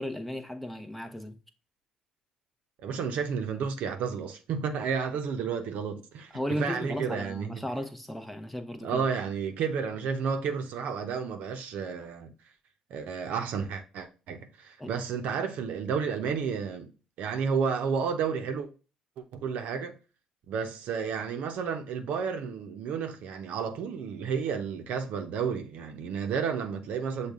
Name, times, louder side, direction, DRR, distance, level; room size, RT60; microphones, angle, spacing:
voice 1, 0.0-1.4 6.3-9.0 14.8-14.9, equal, 5° left, 0.8 m, -35 dB
voice 2, 2.8-7.6 8.8-12.3 12.9-16.9 17.2-18.7 19.2-20.0 20.5-27.3, right 6 dB, 75° right, 0.7 m, -31 dB
6.5 x 2.3 x 3.5 m
supercardioid pair, 65°, 3 cm